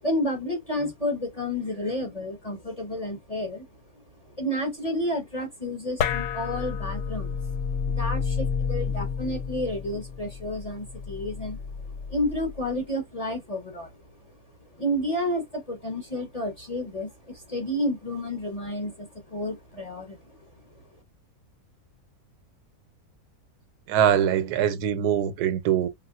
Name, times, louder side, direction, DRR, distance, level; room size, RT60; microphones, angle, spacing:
voice 1, 0.0-3.7 4.2-7.4 7.8-14.0 14.3-14.4 14.8-20.4, left 1 dB, 35° left, 0.7 m, -31 dB
sound 1, 6.0-12.7, left 6 dB, 75° left, 1.0 m, -30 dB
voice 2, 23.9-25.9, right 9 dB, 85° right, 1.1 m, -23 dB
3.5 x 2.5 x 2.3 m
omnidirectional pair, 1.6 m